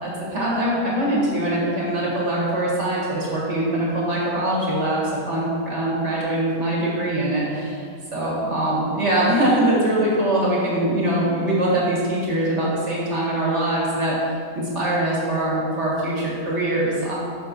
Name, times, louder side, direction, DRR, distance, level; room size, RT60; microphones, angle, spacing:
voice 1, 0.0-5.0 5.3-7.8 8.1-14.1 14.5-17.1, right 1 dB, 35° right, -6 dB, 1.7 m, -22 dB
6.4 x 4.5 x 5.2 m, 2.3 s
omnidirectional pair, 2.3 m